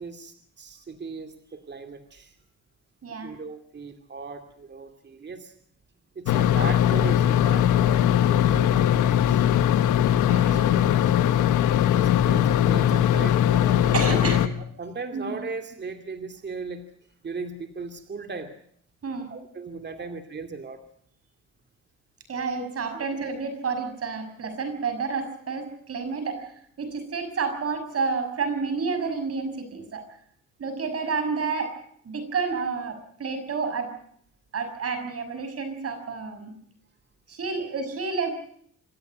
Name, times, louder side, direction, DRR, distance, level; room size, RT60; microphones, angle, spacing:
voice 1, 0.0-2.4 3.2-5.5 6.1-9.5 10.5-10.8 12.0-14.2 14.8-16.8 17.2-18.5 19.3-20.8 22.9-23.1 37.5-37.7, right 4 dB, 35° right, 6 dB, 2.5 m, -37 dB
voice 2, 3.0-3.3 10.3-11.0 13.9-14.4 15.1-15.4 19.0-19.3 22.3-26.5 26.8-30.0 30.6-31.7 32.0-33.9 34.5-36.5 37.3-38.3, right 5 dB, 50° right, 8 dB, 6.3 m, -30 dB
sound 1, 6.3-14.5, left 11 dB, 90° left, 1.3 m, -20 dB
27.0 x 13.0 x 9.0 m, 0.67 s
cardioid pair, 90°, 30 cm